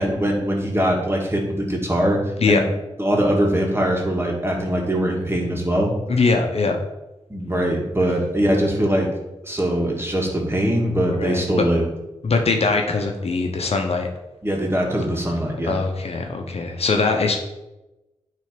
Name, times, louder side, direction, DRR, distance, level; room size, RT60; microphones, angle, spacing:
voice 1, 0.0-2.2 2.5-2.6 3.0-5.9 7.3-9.1 9.4-11.9 14.4-15.8, equal, 20° right, 0 dB, 2.1 m, -22 dB
voice 2, 6.1-6.8 11.0-11.7 12.2-14.1 15.6-17.4, left 3 dB, 60° left, 3 dB, 1.0 m, -21 dB
9.0 x 3.4 x 5.2 m, 1.0 s
cardioid pair, 40°, 12 cm